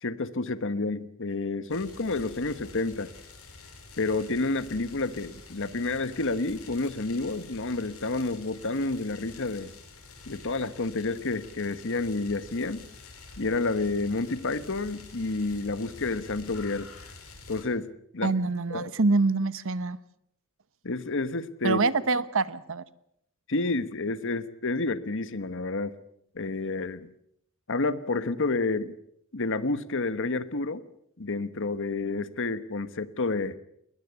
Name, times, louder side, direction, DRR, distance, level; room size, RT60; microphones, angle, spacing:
voice 1, 0.0-3.1 4.0-9.7 10.3-12.9 13.4-16.9 17.5-18.3 18.7-18.9 20.8-21.8 23.5-25.9 26.3-27.1 27.7-28.9 29.3-30.8 31.2-33.6, left 3 dB, 60° left, 14 dB, 1.2 m, -29 dB
sound 1, 1.7-17.6, left 3 dB, 80° left, 4.8 m, -48 dB
voice 2, 18.2-20.0 21.6-22.8, right 3 dB, 65° right, 16 dB, 1.0 m, -25 dB
21.0 x 20.5 x 8.2 m, 0.74 s
head